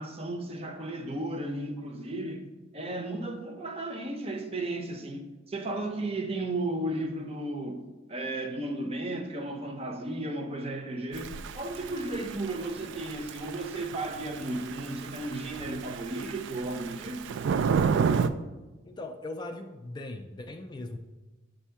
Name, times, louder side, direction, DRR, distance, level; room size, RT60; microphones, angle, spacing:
voice 1, 0.0-2.4 2.7-7.8 8.1-17.3, right 2 dB, 30° right, 0.6 m, -34 dB
Thunder / Rain, 11.1-18.3, right 6 dB, 65° right, 0.3 m, -31 dB
voice 2, 18.8-21.0, left 2 dB, 20° left, 0.3 m, -39 dB
7.1 x 2.7 x 5.6 m
head